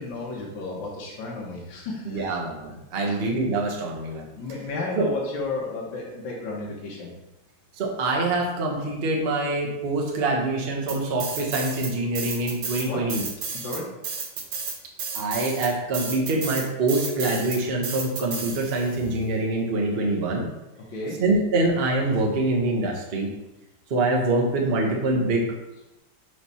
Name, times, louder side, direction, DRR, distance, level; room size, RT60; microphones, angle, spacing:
voice 1, 0.0-2.4 3.0-3.2 4.3-7.1 12.9-13.1 13.5-13.9 20.8-21.2, left 3 dB, 70° left, -4 dB, 1.9 m, -33 dB
voice 2, 2.0-4.3 5.0-5.1 7.8-13.2 15.1-20.5 21.2-23.3 23.9-25.4, right 2 dB, 40° right, 0 dB, 1.0 m, -25 dB
sound 1, 10.9-11.9 12.2-19.0, right 5 dB, 75° right, 1.8 m, -32 dB
6.6 x 3.3 x 5.5 m, 0.96 s
omnidirectional pair, 2.2 m